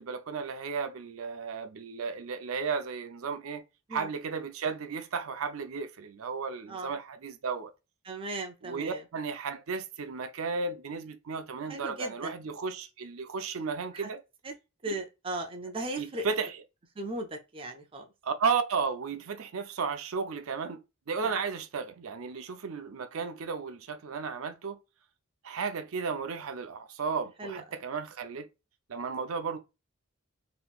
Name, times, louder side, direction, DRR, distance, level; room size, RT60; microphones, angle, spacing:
voice 1, 0.0-3.6 3.9-7.7 8.6-14.2 14.9-15.0 16.0-16.6 18.2-20.8 21.1-24.8 25.4-28.5 28.9-29.6, right 5 dB, 75° right, 0.5 m, -34 dB
voice 2, 8.0-9.0 11.7-12.3 13.9-14.1 14.4-14.5 14.8-16.3 17.0-18.1 21.2-21.3 27.4-27.6, right 2 dB, 25° right, 0.5 m, -37 dB
3.5 x 3.0 x 2.3 m
head